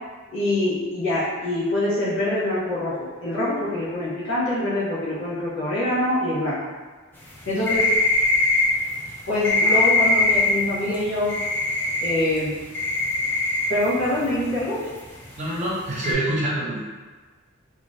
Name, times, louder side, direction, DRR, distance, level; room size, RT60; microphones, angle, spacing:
voice 1, 0.3-6.6 7.5-7.8 9.3-11.3 12.0-12.6 13.7-14.8, left 1 dB, 80° left, -10 dB, 1.1 m, -24 dB
sound 1, 7.2-16.1, left 2 dB, 10° left, 0.4 m, -22 dB
voice 2, 15.4-16.8, right 1 dB, 35° right, -6 dB, 0.7 m, -25 dB
3.1 x 2.4 x 2.5 m, 1.4 s
head